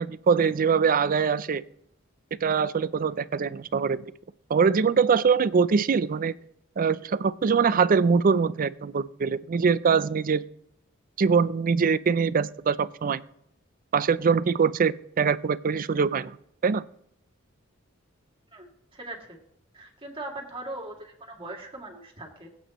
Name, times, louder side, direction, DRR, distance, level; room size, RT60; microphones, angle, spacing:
voice 1, 0.0-1.6 2.4-4.0 4.5-6.3 6.8-10.4 11.2-13.2 13.9-16.4 16.6-16.8, right 5 dB, 45° right, 17 dB, 0.4 m, -23 dB
voice 2, 18.5-19.4 19.7-22.5, right 2 dB, 25° right, 0 dB, 2.4 m, -40 dB
21.5 x 8.5 x 3.0 m, 0.75 s
head